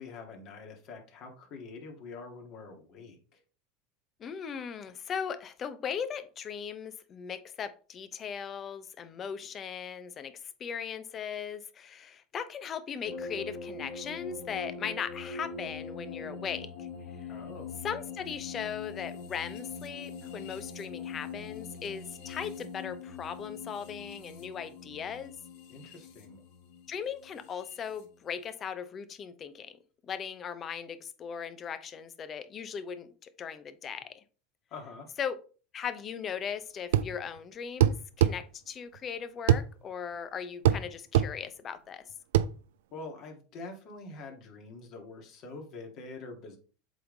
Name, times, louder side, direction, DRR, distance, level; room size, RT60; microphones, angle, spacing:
voice 1, 0.0-3.4 17.3-17.8 25.7-26.4 34.7-35.1 42.9-46.6, left 3 dB, 50° left, 2 dB, 2.1 m, -45 dB
voice 2, 4.2-10.3 10.6-16.9 17.2-17.3 17.8-25.3 26.9-29.8 30.0-34.2 35.2-35.4 35.7-42.0, left 7 dB, 35° left, 12 dB, 0.8 m, -38 dB
sound 1, 13.0-28.0, left 5 dB, 70° left, 1.5 m, -43 dB
sound 2, 36.9-37.1 37.8-38.4 39.5-39.7 40.6-40.8 41.1-41.3 42.3-42.5, right 11 dB, 80° right, 0.3 m, -22 dB
7.6 x 3.6 x 3.9 m, 0.38 s
hypercardioid pair, 100°, 0 cm